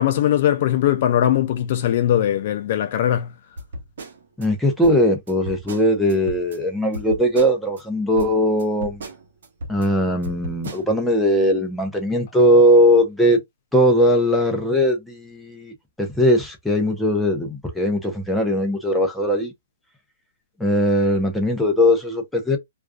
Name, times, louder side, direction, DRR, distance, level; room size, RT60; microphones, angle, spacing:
voice 1, 0.0-3.3, left 11 dB, 50° left, 0.4 m, -20 dB
sound 1, 3.6-4.5 4.8-6.6 6.9-7.8 8.2-9.9 10.2-10.9, equal, 70° right, 0.9 m, -36 dB
voice 2, 4.4-9.0 9.7-13.4 13.7-19.5 20.6-22.6, equal, ahead, 0.6 m, -19 dB
2.4 x 2.2 x 2.2 m
hypercardioid pair, 145°, 0 cm